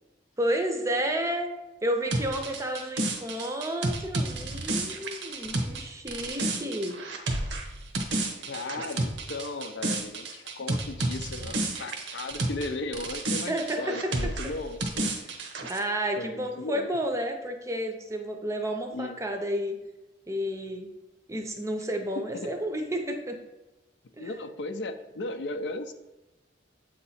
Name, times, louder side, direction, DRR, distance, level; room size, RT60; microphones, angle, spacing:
voice 1, 0.4-1.5 1.8-7.0 13.5-14.1 15.7-19.8 20.3-20.9 21.3-23.4 24.2-24.3, equal, 15° right, 5 dB, 0.6 m, -31 dB
sound 1, 2.1-12.7 12.9-15.8, right 2 dB, 90° right, 0.8 m, -31 dB
voice 2, 8.5-15.2 16.2-16.9 18.9-19.2 22.3-22.5 24.2-25.9, left 2 dB, 70° left, 8 dB, 0.5 m, -36 dB
7.8 x 2.9 x 4.2 m, 1.0 s
head